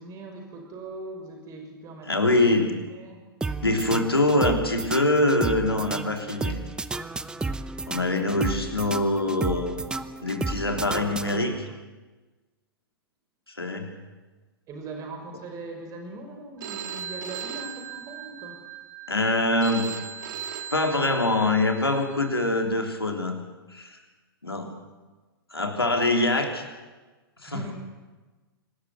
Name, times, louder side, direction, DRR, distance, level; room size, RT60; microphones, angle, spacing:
voice 1, 0.0-2.5 2.9-3.3 14.7-18.6 27.5-27.7, right 2 dB, 25° right, 3 dB, 6.0 m, -40 dB
voice 2, 2.1-2.7 3.6-6.6 7.9-9.8 10.2-11.7 13.5-13.9 19.1-19.9 20.7-23.3 23.7-24.0 24.4-24.7 25.5-26.6 27.4-27.7, left 2 dB, 85° left, 4 dB, 3.5 m, -24 dB
sound 1, 3.4-11.7, right 3 dB, 5° right, 0.8 m, -32 dB
Telephone, 16.6-22.6, right 8 dB, 55° right, 2.3 m, -38 dB
25.0 x 13.0 x 9.5 m, 1.2 s
figure-of-eight pair, 105°, 13 cm